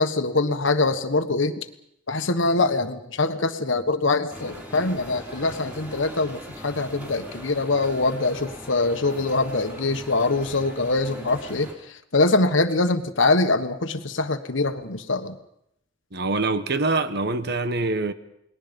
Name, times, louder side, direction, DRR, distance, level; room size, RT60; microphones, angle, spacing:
voice 1, 0.0-1.7 2.1-11.7 12.1-15.4, left 3 dB, 65° left, 1.4 m, -23 dB
sound 1, 4.3-11.7, equal, 10° right, 4.3 m, -40 dB
voice 2, 16.1-18.1, right 3 dB, 55° right, 1.3 m, -24 dB
29.5 x 20.0 x 5.4 m
head